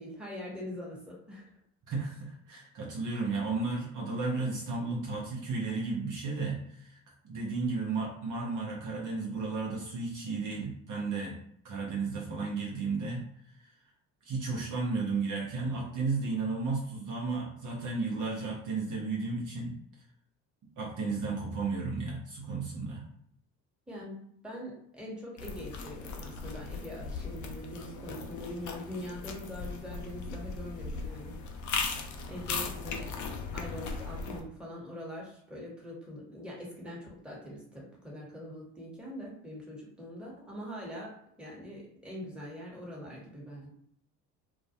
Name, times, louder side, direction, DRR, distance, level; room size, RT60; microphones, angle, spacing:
voice 1, 0.0-1.5 23.9-31.7 32.3-43.7, equal, ahead, -4 dB, 1.1 m, -43 dB
voice 2, 1.9-7.0 7.2-11.4 11.6-13.5 14.2-19.8 20.8-23.0, right 4 dB, 45° right, -3 dB, 0.8 m, -33 dB
sound 1, 25.4-34.4, left 4 dB, 45° left, 0.5 m, -38 dB
2.3 x 2.1 x 2.8 m, 0.68 s
hypercardioid pair, 60°, 42 cm